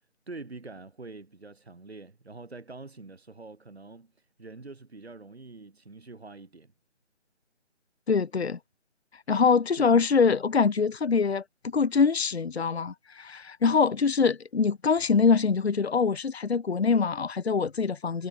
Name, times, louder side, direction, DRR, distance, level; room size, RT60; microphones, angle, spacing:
voice 1, 0.3-6.7 9.3-9.4 9.8-10.0, right 3 dB, 60° right, 6.7 m, -45 dB
voice 2, 8.1-8.6 9.3-11.4 11.7-18.3, left 5 dB, 60° left, 0.8 m, -24 dB
figure-of-eight pair, 155°, 36 cm